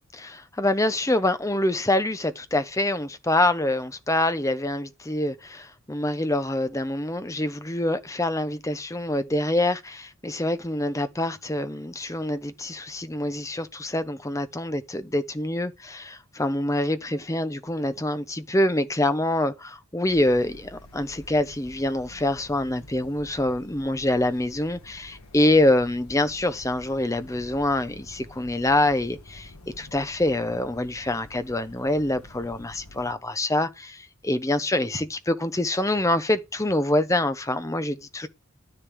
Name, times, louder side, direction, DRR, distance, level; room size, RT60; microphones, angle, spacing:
voice 1, 0.1-29.5 29.8-38.3, left 1 dB, 15° left, 0.7 m, -25 dB
sound 1, 20.1-33.1, left 1 dB, 75° left, 1.6 m, -48 dB
12.0 x 10.0 x 3.5 m
head